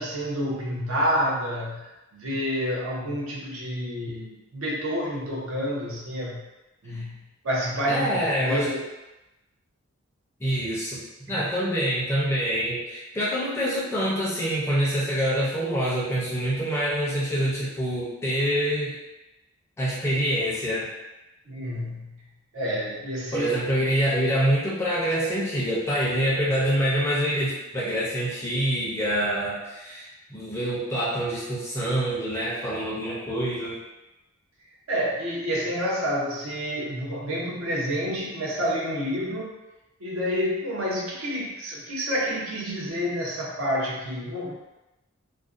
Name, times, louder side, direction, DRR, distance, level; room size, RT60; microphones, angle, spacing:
voice 1, 0.0-1.8 2.1-6.5 6.8-8.8 11.3-11.4 21.5-22.2 22.5-23.6 34.9-39.5 40.0-44.6, equal, 70° right, -5 dB, 0.7 m, -29 dB
voice 2, 7.9-8.7 10.4-11.0 11.3-18.9 19.8-20.9 23.3-33.8, equal, 10° left, -7 dB, 0.5 m, -26 dB
2.5 x 2.1 x 2.4 m, 1.0 s
head